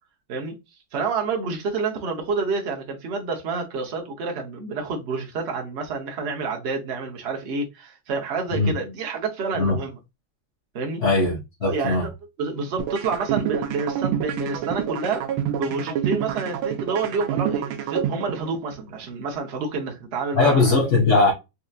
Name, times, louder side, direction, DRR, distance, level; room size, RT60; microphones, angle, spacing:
voice 1, 0.9-10.0 10.7-11.0 11.6-12.0 12.4-15.2 15.6-20.8, right 4 dB, 55° right, 0.7 m, -28 dB
voice 2, 11.0-12.1 20.3-21.3, left 3 dB, 45° left, 1.0 m, -19 dB
sound 1, 12.8-18.8, right 10 dB, 85° right, 1.5 m, -27 dB
4.2 x 2.7 x 2.3 m
omnidirectional pair, 2.2 m